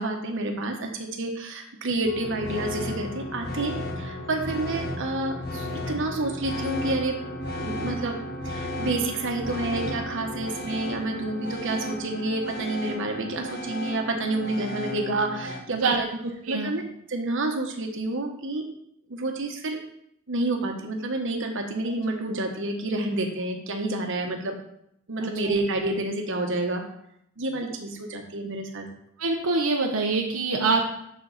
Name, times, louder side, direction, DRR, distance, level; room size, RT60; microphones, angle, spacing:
voice 1, 0.0-7.1 7.6-8.2 8.4-16.1 16.5-16.8 17.1-18.6 19.1-19.8 20.3-24.6 25.1-26.8 27.4-28.9, right 2 dB, 65° right, 3 dB, 1.2 m, -29 dB
sound 1, 2.0-15.6, left 1 dB, 50° left, 1.3 m, -34 dB
voice 2, 15.7-16.7 25.2-25.6 29.2-30.8, right 3 dB, 85° right, 0 dB, 0.9 m, -25 dB
7.2 x 6.3 x 4.1 m, 0.74 s
head